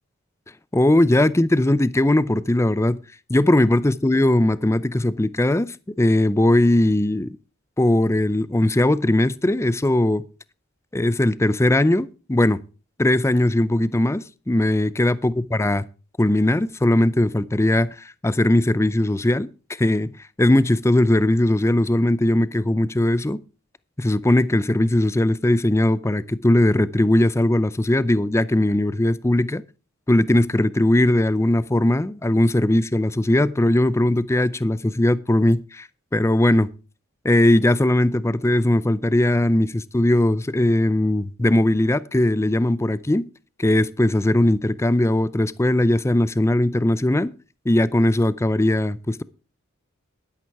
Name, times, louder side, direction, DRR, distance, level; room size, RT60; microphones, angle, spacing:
voice 1, 0.7-3.0 3.3-7.3 7.8-10.2 10.9-12.6 13.0-15.8 16.2-19.5 19.8-20.1 20.4-23.4 24.0-29.6 30.1-35.9 36.1-36.7 37.2-43.2 43.6-47.3 47.7-49.2, left 1 dB, 15° left, 0.5 m, -19 dB
11.5 x 11.0 x 4.7 m
head